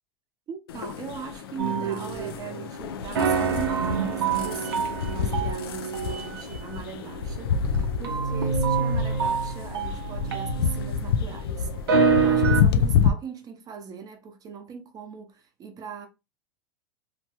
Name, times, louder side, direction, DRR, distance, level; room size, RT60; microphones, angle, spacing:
voice 1, 0.5-16.1, right 6 dB, 30° right, 0.7 m, -40 dB
sound 1, 0.7-13.1, left 7 dB, 85° left, 0.4 m, -28 dB
sound 2, 1.6-2.8 3.1-11.3 11.7-12.6, right 5 dB, 85° right, 0.7 m, -26 dB
2.9 x 2.2 x 2.8 m
hypercardioid pair, 115°, 12 cm